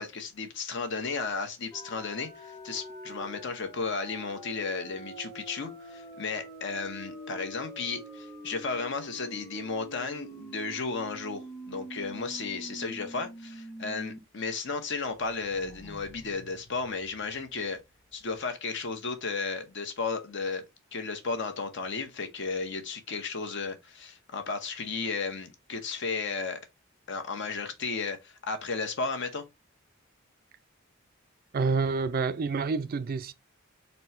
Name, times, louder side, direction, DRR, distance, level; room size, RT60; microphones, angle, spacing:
voice 1, 0.0-17.8 18.1-20.6 20.9-26.6 27.1-29.4, left 4 dB, 60° left, 0.9 m, -34 dB
sound 1, 1.7-14.2 14.5-14.6 15.0-17.7, right 1 dB, 20° left, 0.9 m, -45 dB
voice 2, 31.5-33.3, right 4 dB, 45° right, 0.4 m, -28 dB
4.2 x 2.2 x 4.2 m
head